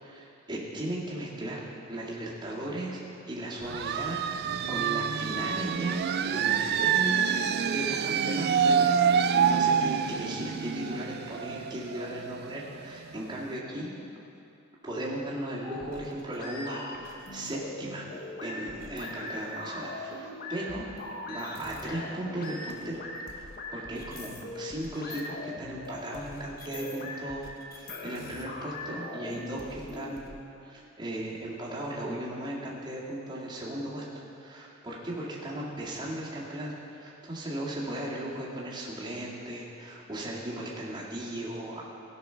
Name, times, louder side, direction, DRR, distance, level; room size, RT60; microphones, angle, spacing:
voice 1, 0.0-3.0 3.3-7.3 7.6-13.9 14.8-18.0 18.4-23.1 23.3-34.0 34.3-41.8, right 1 dB, 20° right, -7 dB, 2.0 m, -37 dB
sound 1, 3.6-13.1, right 7 dB, 50° right, 0.4 m, -27 dB
sound 2, 15.6-30.3, left 2 dB, 45° left, 1.1 m, -41 dB
16.5 x 6.1 x 5.7 m, 2.7 s
head